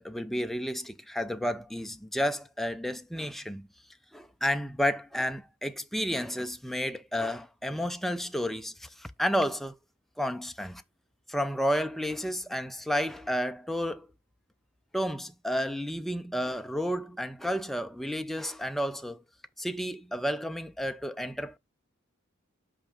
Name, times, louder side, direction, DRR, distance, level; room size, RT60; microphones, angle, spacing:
voice 1, 0.0-3.7 4.1-9.7 10.2-10.8 11.3-14.1 14.9-19.2 19.6-21.6, equal, ahead, 0.4 m, -31 dB
5.6 x 4.9 x 3.4 m
head